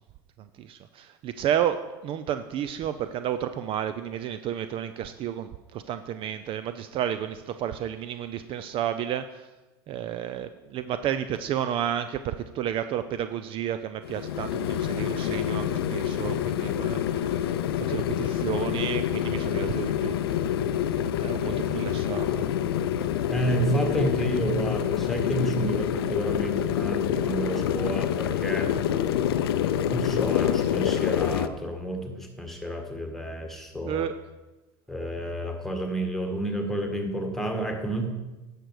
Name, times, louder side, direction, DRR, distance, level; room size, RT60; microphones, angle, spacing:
voice 1, 0.4-9.5 9.9-20.2 21.2-22.5 33.9-34.1, right 10 dB, 45° right, 11 dB, 0.5 m, -31 dB
sound 1, 14.0-31.5, left 10 dB, 80° left, 0.5 m, -27 dB
voice 2, 23.3-28.7 29.9-34.1 34.9-38.1, right 1 dB, ahead, 4 dB, 1.7 m, -30 dB
10.0 x 6.7 x 4.8 m, 1.1 s
hypercardioid pair, 90°, 12 cm